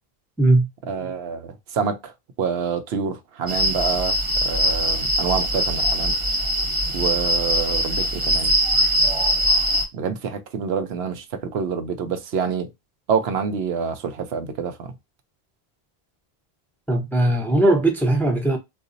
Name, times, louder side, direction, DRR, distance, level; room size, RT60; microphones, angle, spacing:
voice 1, 0.9-2.1 2.4-4.2 4.4-6.2 6.9-8.5 9.9-12.7 13.1-14.9, right 6 dB, 85° right, 0.9 m, -27 dB
sound 1, 3.5-9.8, equal, 35° right, 0.7 m, -22 dB
voice 2, 16.9-18.6, right 2 dB, ahead, 0.5 m, -19 dB
3.9 x 2.4 x 2.5 m
omnidirectional pair, 1.0 m